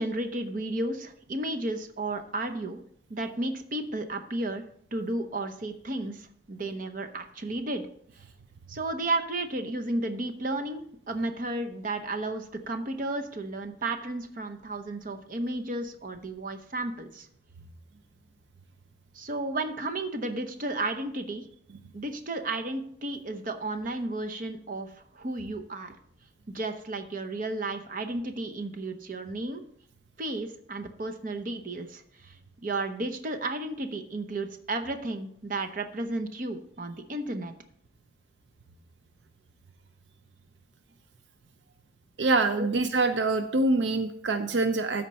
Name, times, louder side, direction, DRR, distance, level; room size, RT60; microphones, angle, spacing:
voice 1, 0.0-2.8 3.1-4.6 4.9-7.8 8.7-17.3 19.1-21.4 21.9-24.9 25.1-25.9 26.5-29.6 30.2-32.3 32.6-37.5 42.6-42.7, right 2 dB, 45° right, 6 dB, 0.8 m, -33 dB
voice 2, 42.2-45.1, right 3 dB, 75° right, 9 dB, 0.5 m, -25 dB
13.0 x 4.5 x 4.2 m, 0.65 s
head